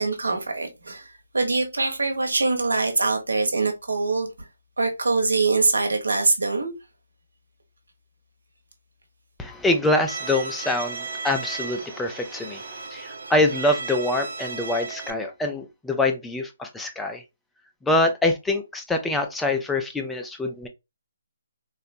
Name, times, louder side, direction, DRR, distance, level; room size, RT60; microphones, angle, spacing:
voice 1, 0.0-4.3 4.8-6.7, right 3 dB, 80° right, 1.0 m, -23 dB
voice 2, 9.4-17.2 17.8-20.7, left 2 dB, 5° left, 0.4 m, -25 dB
Bowed string instrument, 10.1-15.1, right 4 dB, 65° right, 0.4 m, -35 dB
3.9 x 2.1 x 2.5 m
figure-of-eight pair, 145°, 0 cm